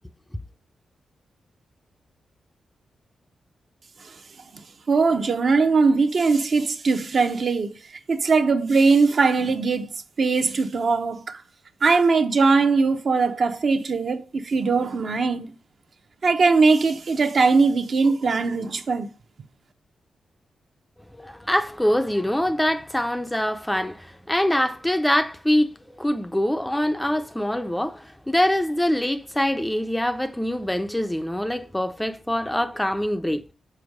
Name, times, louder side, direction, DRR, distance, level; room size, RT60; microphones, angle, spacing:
voice 1, 4.9-7.7 8.1-9.9 10.2-11.4 11.8-15.5 16.2-19.1, right 4 dB, 55° right, 0.8 m, -20 dB
voice 2, 21.2-25.7 26.0-33.4, left 1 dB, 5° left, 0.5 m, -24 dB
6.9 x 4.4 x 4.7 m
cardioid pair, 105°, 0 cm